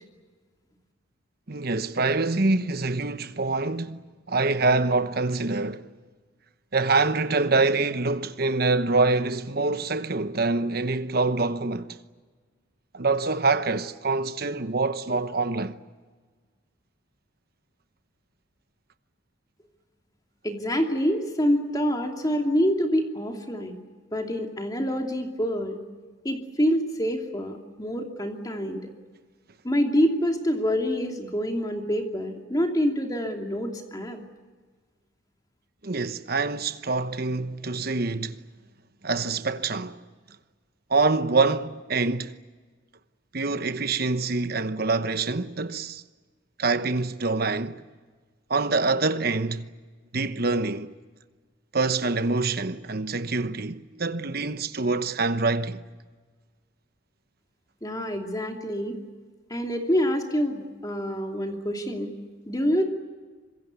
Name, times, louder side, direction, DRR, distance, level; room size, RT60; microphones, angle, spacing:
voice 1, 1.5-5.9 6.7-12.0 12.9-15.8 35.8-38.4 39.0-40.0 40.9-42.4 43.3-46.0 46.6-47.8 48.5-49.7 50.1-50.9 51.7-55.8, right 3 dB, 50° right, 1.1 m, -25 dB
voice 2, 20.4-23.8 24.1-25.8 26.2-28.9 29.6-34.2 57.8-59.0 59.5-62.1 62.5-62.9, equal, 20° left, 2.8 m, -26 dB
26.0 x 22.5 x 8.3 m
head